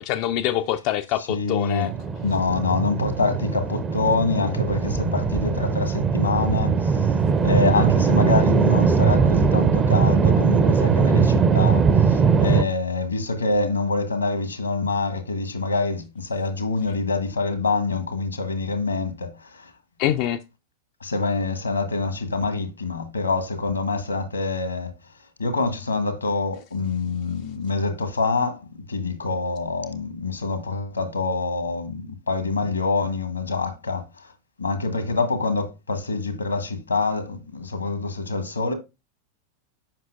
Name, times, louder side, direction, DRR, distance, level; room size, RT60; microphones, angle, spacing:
voice 1, 0.0-1.9 20.0-20.4, left 12 dB, 45° left, 0.3 m, -25 dB
voice 2, 1.2-1.9 2.2-19.7 21.0-24.9 25.4-34.3 34.6-38.7, left 3 dB, 80° left, 1.2 m, -26 dB
sound 1, 1.9-12.6, right 5 dB, 25° right, 0.5 m, -20 dB
7.4 x 5.5 x 2.5 m
figure-of-eight pair, 90°, 0 cm